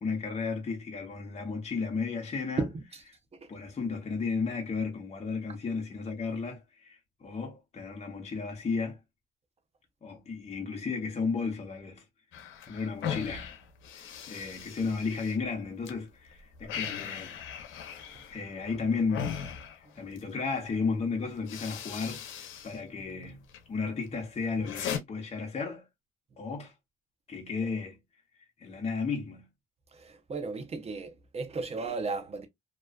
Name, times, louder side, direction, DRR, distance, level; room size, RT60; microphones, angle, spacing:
voice 1, 0.0-2.7 3.5-9.0 10.0-12.0 12.7-13.5 13.9-17.4 18.3-19.4 20.0-23.4 23.7-25.9 26.4-26.7 27.3-28.0 28.6-29.4, left 4 dB, 35° left, 0.8 m, -34 dB
sound 1, 12.3-15.9 16.3-20.3 21.0-21.1 21.4-22.8 23.1-23.6 24.1-25.0, left 8 dB, 80° left, 0.6 m, -39 dB
voice 2, 30.0-32.5, right 3 dB, 30° right, 0.6 m, -34 dB
2.4 x 2.3 x 2.2 m
cardioid pair, 90°, 20 cm